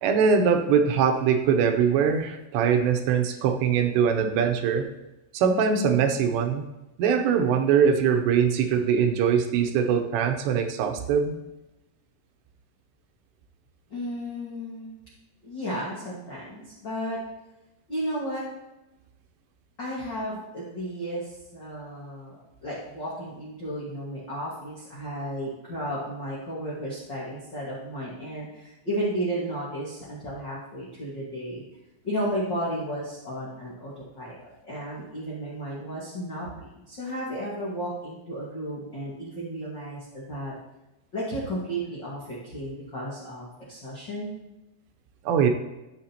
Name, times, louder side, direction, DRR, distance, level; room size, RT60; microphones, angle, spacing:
voice 1, 0.0-4.9 5.3-6.6 7.0-11.3 45.2-45.5, right 7 dB, 80° right, 5 dB, 2.8 m, -22 dB
voice 2, 13.9-14.9 15.4-17.2 17.9-18.4 19.8-31.6 32.0-40.5 41.1-44.3, equal, 80° left, -7 dB, 1.0 m, -33 dB
13.5 x 7.4 x 2.9 m, 0.98 s
omnidirectional pair, 5.3 m